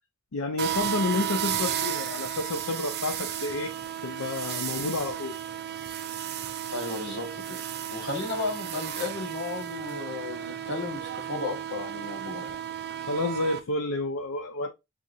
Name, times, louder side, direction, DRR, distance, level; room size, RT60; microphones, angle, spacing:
voice 1, 0.3-3.7 4.0-5.3 13.1-14.7, left 3 dB, 75° left, 0.6 m, -30 dB
sound 1, 0.6-13.6, right 10 dB, 50° right, 0.6 m, -33 dB
voice 2, 6.7-7.6 7.9-12.6, left 3 dB, 55° left, 1.8 m, -34 dB
6.2 x 2.8 x 2.7 m
head